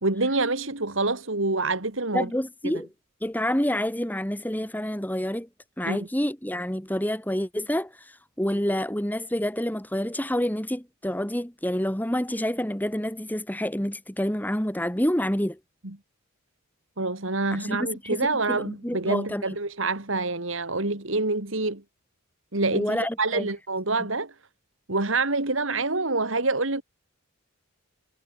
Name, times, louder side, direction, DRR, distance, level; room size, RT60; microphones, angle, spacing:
voice 1, 0.0-2.3 2.6-2.7 5.9-6.1 17.0-21.8 22.5-24.3 24.9-26.8, right 3 dB, 65° right, 2.7 m, -26 dB
voice 2, 2.1-2.9 3.2-5.5 5.8-15.6 17.5-19.6 22.7-23.5, equal, 10° left, 2.0 m, -28 dB
head